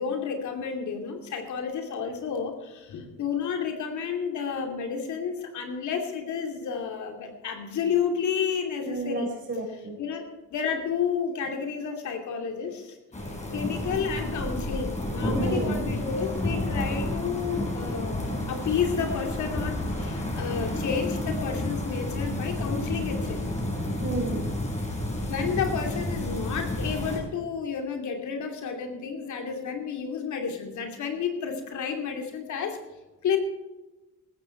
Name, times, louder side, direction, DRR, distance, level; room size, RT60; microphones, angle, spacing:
voice 1, 0.0-9.3 10.0-13.0 13.5-23.4 25.2-32.8 33.2-33.4, left 6 dB, 70° left, 4 dB, 2.8 m, -31 dB
voice 2, 8.8-10.0 15.3-15.8 24.0-24.5, right 3 dB, 40° right, 1 dB, 5.8 m, -31 dB
sound 1, 13.1-27.2, left 1 dB, 25° left, 5.7 m, -30 dB
15.0 x 13.5 x 4.5 m, 1.1 s
cardioid pair, 90°, 30 cm